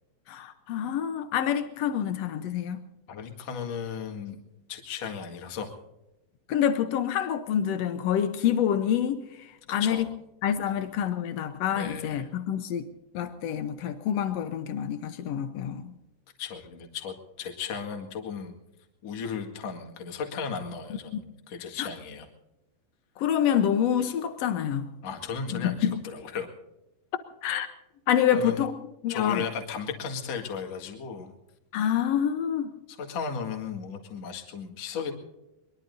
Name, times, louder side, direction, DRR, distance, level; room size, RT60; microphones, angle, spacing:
voice 1, 0.3-2.8 6.5-10.1 10.4-12.9 13.1-15.9 21.8-21.9 23.2-24.8 25.5-26.0 27.4-27.7 28.1-28.7 29.0-29.4 31.7-32.7, left 9 dB, 90° left, 1.4 m, -27 dB
voice 2, 3.1-4.4 4.7-5.7 9.8-10.1 10.7-10.8 11.7-12.3 16.4-18.5 19.0-22.3 25.0-26.5 28.3-28.6 29.1-31.3 32.9-35.1, left 6 dB, 50° left, 2.8 m, -35 dB
23.5 x 22.5 x 2.7 m
omnidirectional pair, 4.2 m